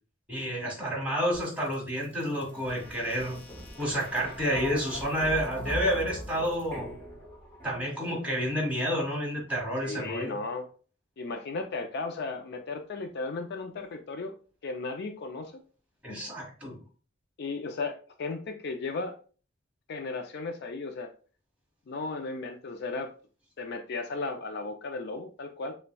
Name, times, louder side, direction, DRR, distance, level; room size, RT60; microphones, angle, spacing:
voice 1, 0.3-3.4 3.8-6.9 7.6-10.3 16.0-16.8, equal, 10° right, -2 dB, 1.7 m, -30 dB
sound 1, 1.3-8.1, equal, 10° left, 1.1 m, -41 dB
voice 2, 9.8-10.7 11.2-14.3 14.6-15.5 17.4-19.1 19.9-21.1 21.9-23.1 23.6-25.7, left 3 dB, 55° left, 5 dB, 0.4 m, -35 dB
6.6 x 2.2 x 2.2 m, 0.38 s
head